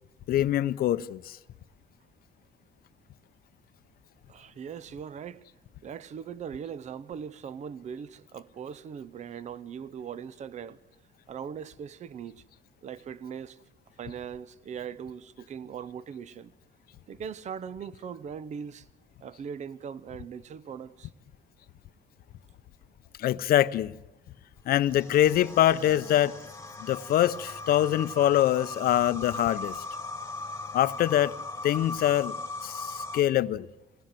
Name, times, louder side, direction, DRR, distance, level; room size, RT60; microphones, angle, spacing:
voice 1, 0.3-1.4 23.2-23.9 24.7-26.3 26.8-29.8 30.7-31.3 31.6-32.4 32.6-33.7, left 12 dB, 60° left, 0.7 m, -24 dB
voice 2, 4.3-5.4 5.8-10.8 11.3-12.4 12.8-13.6 14.0-16.5 17.1-18.9 19.2-21.1, right 7 dB, 45° right, 0.8 m, -40 dB
sound 1, 24.8-33.2, left 2 dB, 15° left, 1.6 m, -39 dB
26.0 x 19.5 x 7.6 m
cardioid pair, 110°, 17 cm